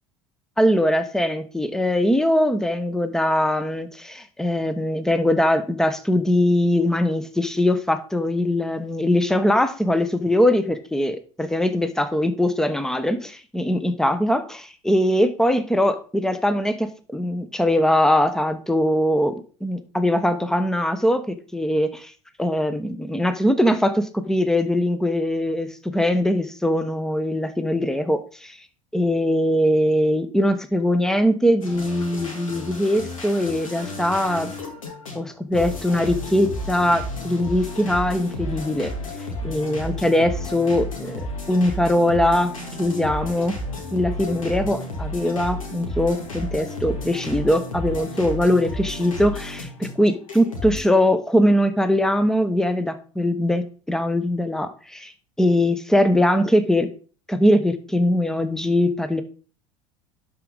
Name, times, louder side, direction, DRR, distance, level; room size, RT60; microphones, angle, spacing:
voice 1, 0.6-22.1 22.4-28.6 28.9-34.5 35.1-38.9 39.4-41.2 41.5-42.5 42.8-43.6 43.9-55.1 55.4-56.9 57.3-59.2, left 1 dB, 5° left, 11 dB, 1.0 m, -21 dB
sound 1, 31.6-50.8, left 1 dB, 80° left, 2.4 m, -32 dB
11.5 x 4.8 x 4.0 m, 0.40 s
figure-of-eight pair, 75°, 17 cm